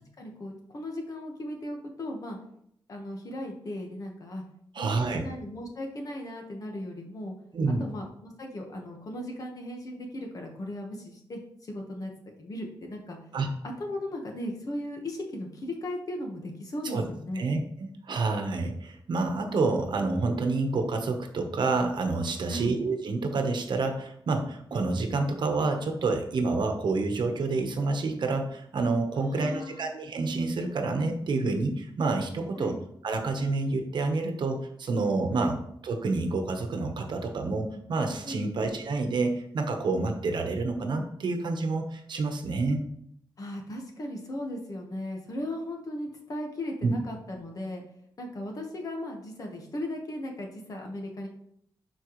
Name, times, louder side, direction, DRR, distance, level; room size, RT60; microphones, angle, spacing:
voice 1, 0.2-2.4 2.9-4.4 4.8-7.3 7.8-12.1 12.4-13.2 13.8-17.5 22.5-22.8 29.2-29.9 32.5-32.8 35.4-35.5 38.2-38.5 43.4-47.8 48.2-51.3, left 1 dB, 45° left, 2 dB, 1.4 m, -37 dB
voice 2, 4.7-5.2 7.5-7.9 13.3-13.5 16.9-17.0 17.4-32.7 33.0-42.8 46.8-46.9, right 3 dB, 60° right, 5 dB, 1.1 m, -28 dB
11.5 x 4.6 x 3.1 m, 0.71 s
wide cardioid pair, 165°, 9 cm